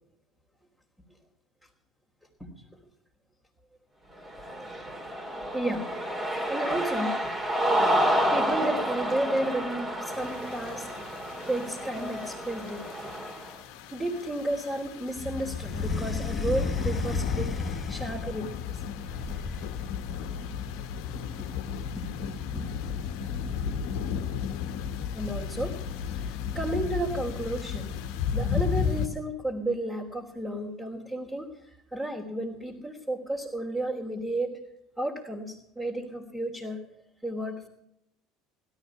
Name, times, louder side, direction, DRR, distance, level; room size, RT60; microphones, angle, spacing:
Cheering, 4.2-13.5, equal, 25° right, 3.3 m, -29 dB
voice 1, 5.5-6.0 6.5-7.2 7.5-7.6 8.1-10.9 11.5-13.1 13.9-17.6 17.9-18.5 21.1-21.2 22.0-24.0 25.1-25.8 26.2-27.9 28.3-31.5 31.9-34.6 35.0-36.8 37.2-37.7, right 1 dB, 5° right, -3 dB, 3.1 m, -33 dB
sound 1, 10.1-29.1, left 7 dB, 55° left, 1.3 m, -34 dB
sound 2, 15.5-18.5 19.0-20.0, left 3 dB, 15° left, 1.9 m, -34 dB
17.0 x 13.0 x 5.8 m, 0.78 s
figure-of-eight pair, 65°, 0 cm